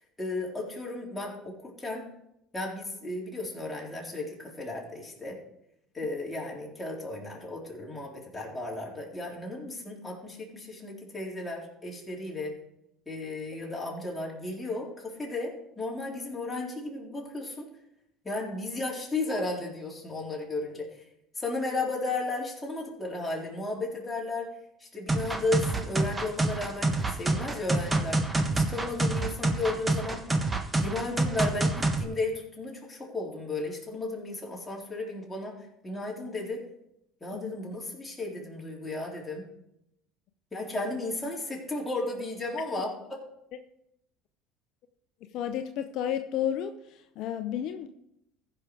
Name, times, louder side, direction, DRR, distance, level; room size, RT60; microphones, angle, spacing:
voice 1, 0.2-2.1 2.5-5.4 5.9-12.5 13.1-17.6 18.2-21.0 21.4-24.5 24.8-28.2 28.5-30.2 30.8-35.6 35.8-36.6 37.2-39.5 40.5-43.2, left 2 dB, 15° left, 4.0 m, -34 dB
sound 1, 25.1-32.0, right 2 dB, 15° right, 1.4 m, -27 dB
voice 2, 45.3-47.9, left 10 dB, 65° left, 0.7 m, -32 dB
15.0 x 5.9 x 4.9 m
supercardioid pair, 85°, 0 cm